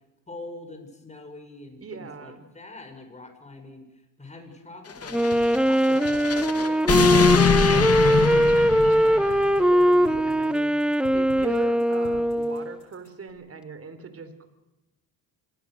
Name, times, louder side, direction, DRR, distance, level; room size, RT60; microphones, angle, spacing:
voice 1, 0.3-8.5, left 2 dB, 15° left, 5 dB, 6.8 m, -44 dB
voice 2, 1.8-2.5 7.3-8.6 8.8-14.5, right 5 dB, 35° right, 11 dB, 4.0 m, -40 dB
sound 1, 4.9-9.7, left 6 dB, 40° left, 2.3 m, -24 dB
Wind instrument woodwind instrument, 5.1-12.8, equal, ahead, 1.0 m, -21 dB
sound 2, 5.3-13.3, left 5 dB, 70° left, 5.1 m, -46 dB
25.5 x 20.5 x 6.6 m, 1.0 s
supercardioid pair, 90°, 39 cm